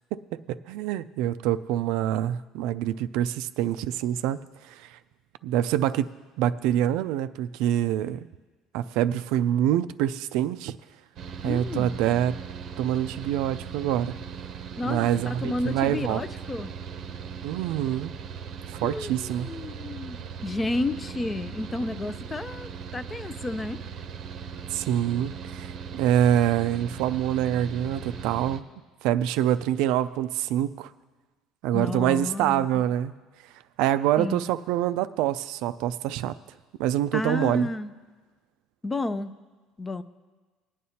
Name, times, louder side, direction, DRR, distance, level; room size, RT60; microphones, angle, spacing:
voice 1, 0.1-5.0 5.4-6.1 6.4-8.3 8.7-10.8 11.4-12.4 12.8-14.1 14.8-16.2 17.4-18.1 18.7-19.5 24.7-28.6 29.0-30.9 31.6-33.1 33.8-36.4 36.8-37.7, right 11 dB, 80° right, 13 dB, 0.4 m, -26 dB
Mechanical fan, 11.2-28.6, right 6 dB, 55° right, 0.7 m, -39 dB
voice 2, 11.4-11.9 14.8-16.7 18.8-23.8 31.7-32.8 34.2-34.4 37.1-37.9 38.8-39.3 39.8-40.0, left 2 dB, 15° left, 13 dB, 0.4 m, -31 dB
20.5 x 9.3 x 2.8 m, 1.3 s
cardioid pair, 140°, 0 cm